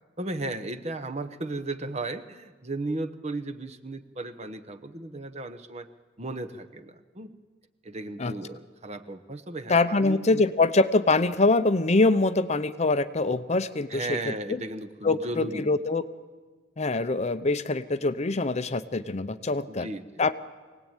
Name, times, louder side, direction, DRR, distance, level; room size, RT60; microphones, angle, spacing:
voice 1, 0.2-5.9 6.2-7.3 7.8-10.4 13.9-15.6 19.7-20.2, right 2 dB, 35° right, 9 dB, 1.0 m, -35 dB
voice 2, 9.7-14.6 15.0-16.1 16.8-19.9 20.2-20.3, left 3 dB, 35° left, 12 dB, 0.7 m, -24 dB
24.5 x 18.0 x 9.0 m, 1.4 s
head